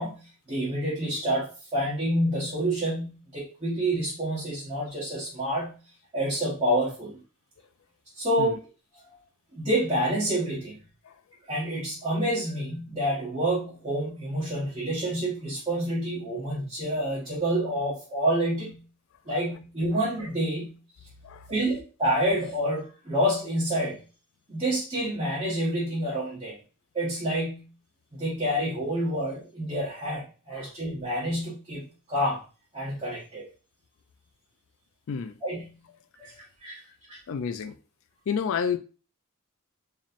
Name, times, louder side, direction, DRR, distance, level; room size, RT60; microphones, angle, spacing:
voice 1, 0.0-5.8 6.1-7.2 8.1-8.6 9.5-10.8 11.5-18.8 19.2-20.8 21.5-24.0 24.5-26.6 26.9-27.7 28.1-32.4 32.7-33.5 35.4-35.8 36.2-36.3 36.6-36.8 37.1-37.2, right 1 dB, 25° right, 1.3 m, -28 dB
voice 2, 35.1-35.4 37.3-37.7 38.3-38.8, left 6 dB, 65° left, 0.4 m, -30 dB
4.2 x 3.1 x 2.5 m
head